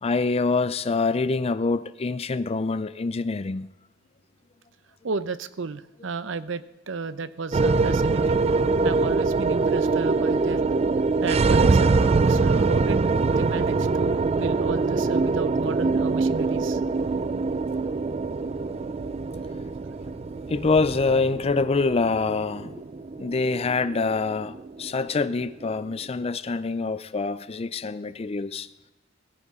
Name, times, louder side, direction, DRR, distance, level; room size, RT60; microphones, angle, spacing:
voice 1, 0.0-3.7 20.5-22.8 23.2-28.7, left 4 dB, 30° left, 0.4 m, -25 dB
voice 2, 5.0-8.4 8.8-10.7 11.2-16.8, right 4 dB, 65° right, 0.7 m, -33 dB
sound 1, 7.5-25.9, right 3 dB, 30° right, 0.4 m, -24 dB
16.0 x 15.0 x 3.7 m
head